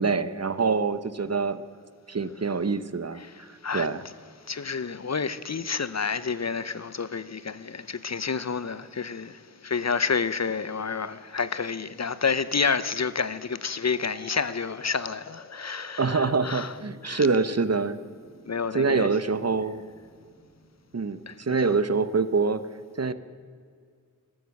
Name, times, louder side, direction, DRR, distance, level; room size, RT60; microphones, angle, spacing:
voice 1, 0.0-1.6 2.1-4.0 16.0-18.0 18.7-19.8 20.9-22.6 23.0-23.1, right 4 dB, 45° right, 0.7 m, -25 dB
voice 2, 3.1-3.9 4.4-16.8 17.0-17.3 18.5-19.1 21.3-21.8, left 5 dB, 50° left, 0.6 m, -29 dB
sound 1, 14.0-21.6, left 2 dB, 30° left, 3.5 m, -51 dB
14.0 x 13.0 x 6.4 m
wide cardioid pair, 55°, 35 cm